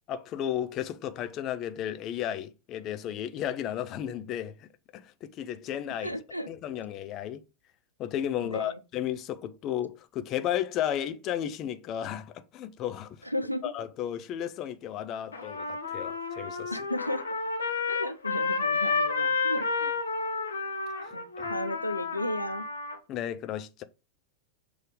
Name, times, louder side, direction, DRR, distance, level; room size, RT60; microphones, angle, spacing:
voice 1, 0.1-6.1 6.5-7.4 8.0-13.2 13.6-16.8 21.0-21.5 23.1-23.8, left 10 dB, 35° left, 0.7 m, -34 dB
voice 2, 6.0-6.5 8.4-8.8 13.2-13.7 16.7-17.2 17.9-19.9 21.1-22.7, left 1 dB, 90° left, 0.5 m, -34 dB
Trumpet, 15.3-23.0, left 4 dB, 75° left, 1.0 m, -31 dB
6.7 x 3.2 x 5.2 m
figure-of-eight pair, 90°, 0 cm